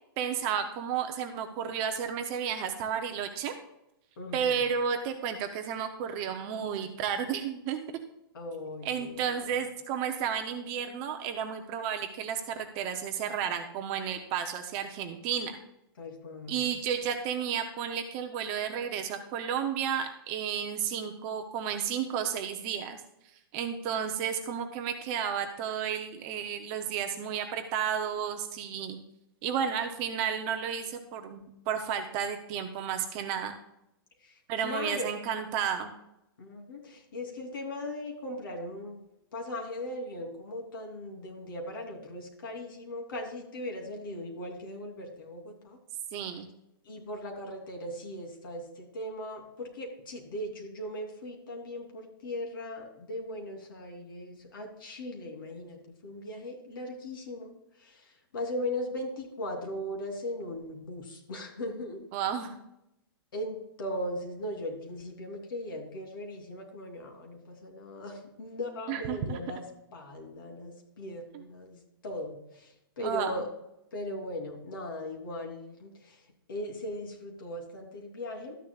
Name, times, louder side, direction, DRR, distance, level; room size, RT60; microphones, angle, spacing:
voice 1, 0.2-3.5 4.3-7.8 8.8-15.6 16.5-23.0 23.5-29.0 29.4-33.6 34.5-35.9 46.1-46.5 62.1-62.5 68.9-69.4 71.3-71.4 73.0-73.4, right 8 dB, 20° right, 6 dB, 0.6 m, -32 dB
voice 2, 4.2-4.6 8.3-9.4 16.0-16.6 34.2-35.1 36.4-39.0 39.3-45.8 46.8-57.5 57.8-62.0 63.3-69.6 69.9-73.5 73.9-76.2 76.5-78.6, left 1 dB, 60° left, 2 dB, 3.0 m, -38 dB
13.0 x 10.0 x 2.3 m, 0.83 s
hypercardioid pair, 175°, 13 cm